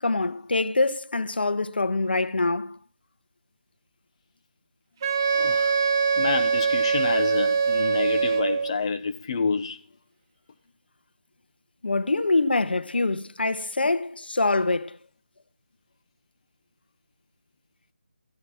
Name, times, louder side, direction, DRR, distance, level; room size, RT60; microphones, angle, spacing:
voice 1, 0.0-2.8 11.8-15.0, left 3 dB, 75° left, 1.4 m, -25 dB
Wind instrument woodwind instrument, 5.0-8.8, right 5 dB, 20° right, 0.7 m, -23 dB
voice 2, 5.3-5.7 6.2-9.8, left 5 dB, 30° left, 0.9 m, -28 dB
16.0 x 11.0 x 3.6 m
figure-of-eight pair, 170°, 5 cm